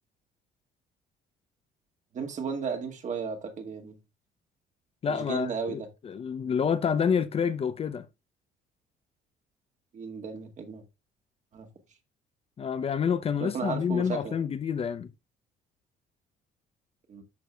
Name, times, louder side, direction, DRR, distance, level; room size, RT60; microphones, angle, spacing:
voice 1, 2.1-4.0 5.1-5.9 9.9-10.8 11.5-11.7 13.4-14.4 17.1-17.2, right 5 dB, 45° right, 1.8 m, -34 dB
voice 2, 5.0-8.1 12.6-15.1, left 7 dB, 35° left, 0.6 m, -28 dB
13.0 x 4.7 x 2.3 m
cardioid pair, 110°, 17 cm